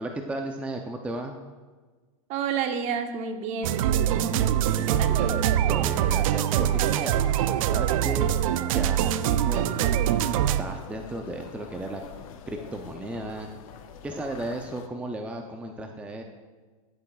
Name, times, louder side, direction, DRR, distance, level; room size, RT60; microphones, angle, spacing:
voice 1, 0.0-1.4 4.7-10.3 10.6-12.0 12.5-13.5 14.0-16.2, right 1 dB, 5° right, 3 dB, 0.5 m, -35 dB
voice 2, 2.3-4.4 4.9-5.1, right 6 dB, 40° right, 7 dB, 0.8 m, -30 dB
sound 1, 3.6-10.6, right 11 dB, 70° right, 0.4 m, -24 dB
sound 2, 9.5-14.9, left 8 dB, 70° left, 0.7 m, -45 dB
10.5 x 8.4 x 2.3 m, 1.4 s
supercardioid pair, 125°, 18 cm